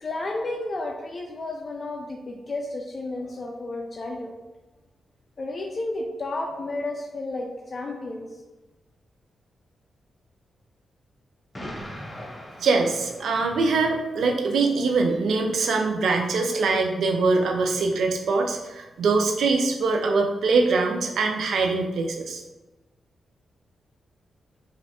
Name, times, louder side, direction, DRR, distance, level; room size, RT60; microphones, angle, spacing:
voice 1, 0.0-4.3 5.4-8.3, left 2 dB, 45° left, 2 dB, 0.3 m, -32 dB
Explosion, 11.5-13.7, equal, 20° left, 0.7 m, -40 dB
voice 2, 12.6-22.4, right 3 dB, 80° right, 3 dB, 0.4 m, -23 dB
3.2 x 2.5 x 2.7 m, 1.1 s
cardioid pair, 65°, 0 cm